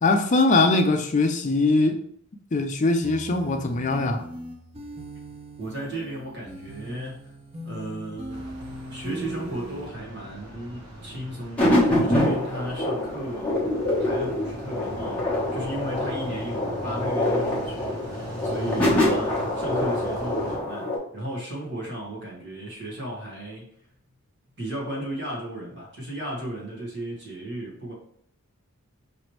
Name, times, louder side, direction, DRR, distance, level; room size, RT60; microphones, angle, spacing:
voice 1, 0.0-2.0 2.5-4.3, left 3 dB, 35° left, 6 dB, 0.4 m, -21 dB
sound 1, 3.0-9.9, equal, 25° right, 0.6 m, -39 dB
voice 2, 5.6-7.3 7.6-8.5 8.9-13.6 14.0-15.2 15.5-23.7 24.6-27.9, right 1 dB, 50° right, -3 dB, 1.6 m, -35 dB
sound 2, 8.3-20.6, equal, 85° right, 1.1 m, -40 dB
sound 3, 11.6-21.0, left 1 dB, 5° left, 1.0 m, -25 dB
4.9 x 3.1 x 3.1 m, 0.66 s
head